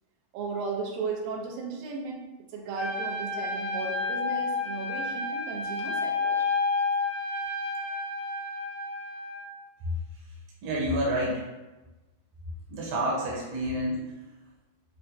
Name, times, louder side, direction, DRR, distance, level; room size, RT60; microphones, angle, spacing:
voice 1, 0.3-2.2 2.5-6.4, right 4 dB, 85° right, 0 dB, 2.3 m, -35 dB
Trumpet, 2.7-9.5, left 3 dB, 80° left, 1.5 m, -30 dB
voice 2, 10.6-11.4 12.7-14.0, right 1 dB, 70° right, -5 dB, 1.7 m, -28 dB
5.9 x 2.1 x 2.6 m, 1.1 s
omnidirectional pair, 3.8 m